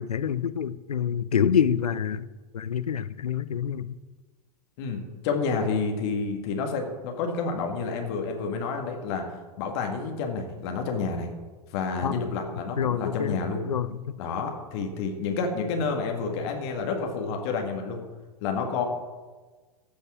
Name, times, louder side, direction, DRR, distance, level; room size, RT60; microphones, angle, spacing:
voice 1, 0.0-2.2 2.5-3.9 12.0-12.1 12.8-13.4 13.7-14.2, left 8 dB, 75° left, 14 dB, 0.6 m, -26 dB
voice 2, 4.8-9.3 9.6-11.3 11.7-13.6 14.2-18.0 18.4-18.8, left 4 dB, 45° left, 3 dB, 1.8 m, -29 dB
15.5 x 5.4 x 6.0 m, 1.3 s
figure-of-eight pair, 100°, 20 cm